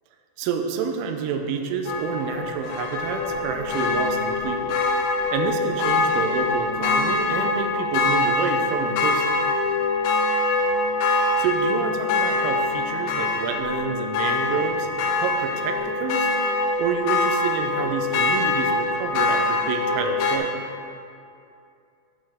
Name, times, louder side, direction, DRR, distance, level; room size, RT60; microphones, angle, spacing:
voice 1, 0.4-4.8 5.3-9.4 11.1-14.9 15.2-16.3 16.8-20.7, right 6 dB, 85° right, 5 dB, 3.0 m, -28 dB
sound 1, 1.9-20.4, left 3 dB, 85° left, 2.7 m, -24 dB
10.0 x 5.4 x 3.5 m, 2.5 s
omnidirectional pair, 5.3 m